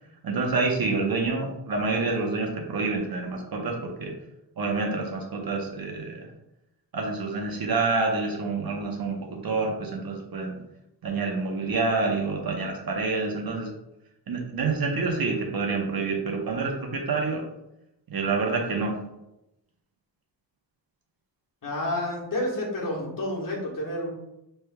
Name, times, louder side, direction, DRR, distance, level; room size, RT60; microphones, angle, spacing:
voice 1, 0.2-4.1 4.6-6.3 6.9-10.6 11.0-13.7 14.3-17.4 18.1-18.9, right 3 dB, 55° right, 0 dB, 0.9 m, -27 dB
voice 2, 21.6-24.1, left 1 dB, 45° left, -4 dB, 1.4 m, -29 dB
6.2 x 3.3 x 2.2 m, 0.87 s
wide cardioid pair, 150°, 44 cm